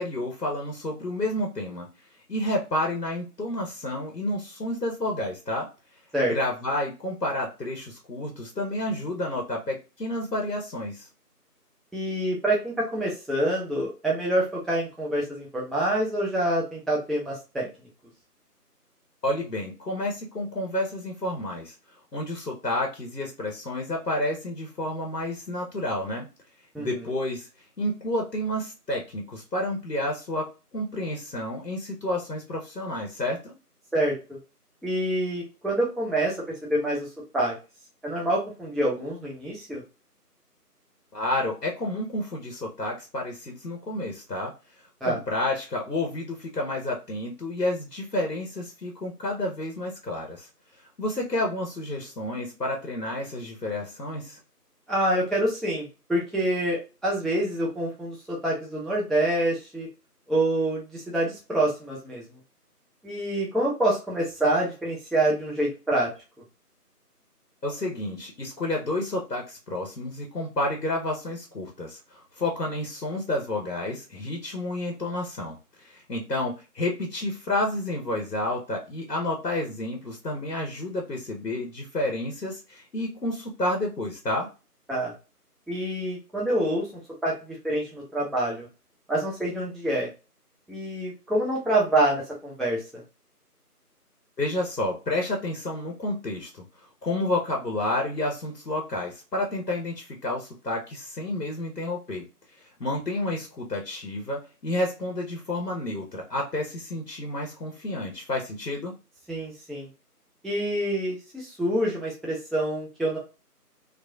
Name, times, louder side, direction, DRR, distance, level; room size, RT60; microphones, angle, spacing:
voice 1, 0.0-1.9 2.3-5.7 6.2-11.1 19.2-21.7 22.1-26.3 26.8-27.5 27.8-30.5 30.7-33.5 41.1-44.5 45.0-50.5 50.8-54.4 67.6-84.5 94.4-96.6 97.0-102.3 102.6-108.9, left 1 dB, 85° left, 1 dB, 1.0 m, -30 dB
voice 2, 11.9-17.7 26.7-26.9 33.9-34.4 34.8-36.4 36.6-37.1 37.3-37.5 38.0-39.8 45.0-45.2 54.9-59.9 60.3-62.2 63.0-66.1 84.9-85.1 85.7-86.9 87.2-88.7 89.1-90.1 90.7-93.0 109.3-109.9 110.4-113.2, right 1 dB, ahead, -3 dB, 0.5 m, -26 dB
3.0 x 2.6 x 2.2 m, 0.31 s
figure-of-eight pair, 175°, 47 cm